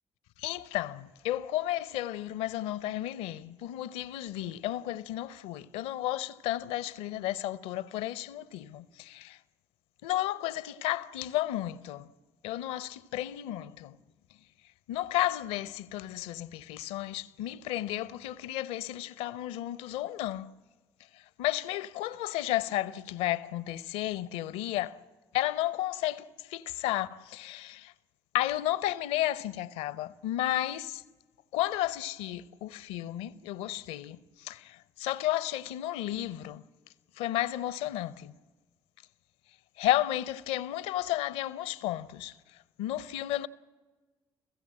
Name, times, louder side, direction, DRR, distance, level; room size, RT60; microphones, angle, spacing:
voice 1, 0.4-9.4 10.0-12.1 12.4-14.0 14.9-20.5 21.4-25.0 25.3-27.9 28.3-31.0 31.5-36.6 37.2-38.3 39.8-42.3 42.8-43.5, left 14 dB, 65° left, 0.6 m, -33 dB
29.5 x 15.5 x 7.5 m
figure-of-eight pair, 40°, 12 cm